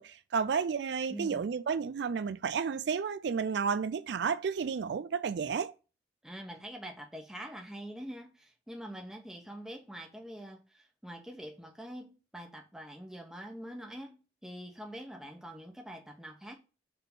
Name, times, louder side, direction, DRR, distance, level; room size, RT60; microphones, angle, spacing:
voice 1, 0.0-5.7, right 6 dB, 65° right, 0.4 m, -32 dB
voice 2, 1.1-1.5 6.2-16.6, equal, 5° right, 1.0 m, -45 dB
5.9 x 3.7 x 5.5 m
head